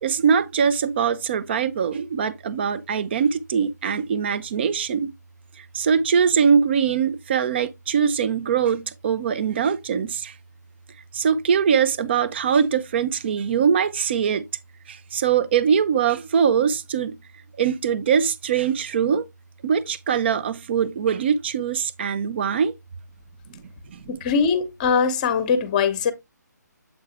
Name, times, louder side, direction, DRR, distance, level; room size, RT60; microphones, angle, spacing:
voice 1, 0.0-5.1 5.6-10.3 11.1-14.4 14.9-17.2 17.6-19.2 19.6-22.7 23.5-23.6 23.9-24.2, right 7 dB, 35° right, 0.6 m, -22 dB
voice 2, 24.1-26.1, left 6 dB, 25° left, 1.0 m, -21 dB
7.8 x 4.6 x 3.3 m
figure-of-eight pair, 145°, 10 cm